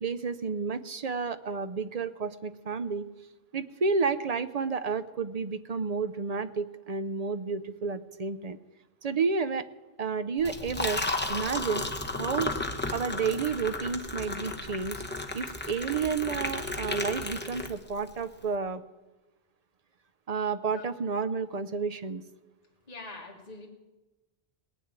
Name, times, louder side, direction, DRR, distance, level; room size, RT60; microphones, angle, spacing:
voice 1, 0.0-3.1 3.5-8.6 9.0-9.6 10.0-11.9 12.2-12.5 12.9-15.0 15.3-18.8 20.3-22.2, right 5 dB, 45° right, 12 dB, 0.6 m, -31 dB
Liquid, 10.4-18.1, left 2 dB, 10° left, 0.9 m, -33 dB
voice 2, 22.9-23.7, left 3 dB, 35° left, -2 dB, 2.1 m, -43 dB
19.0 x 6.7 x 8.9 m, 1.1 s
omnidirectional pair, 1.1 m